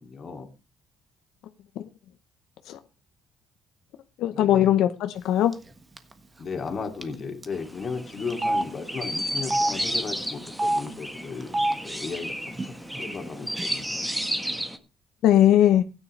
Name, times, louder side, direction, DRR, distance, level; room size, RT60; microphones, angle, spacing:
voice 1, 0.0-0.5 4.3-4.7 6.4-12.4 12.6-12.7 13.0-14.1, left 5 dB, 40° left, 2.5 m, -35 dB
voice 2, 4.2-5.5 15.2-15.8, left 11 dB, 80° left, 0.8 m, -19 dB
Telephone, 5.5-5.7 6.0-6.1 7.0-7.1 7.4-7.5 8.3-8.6 9.4-9.7 10.5-10.8 11.4-11.7 12.5-12.7 12.9-13.6, right 1 dB, 20° right, 1.3 m, -26 dB
Chirp tweet, 7.5-14.8, equal, 5° right, 1.4 m, -32 dB
15.0 x 9.8 x 3.3 m
cardioid pair, 120°, 0 cm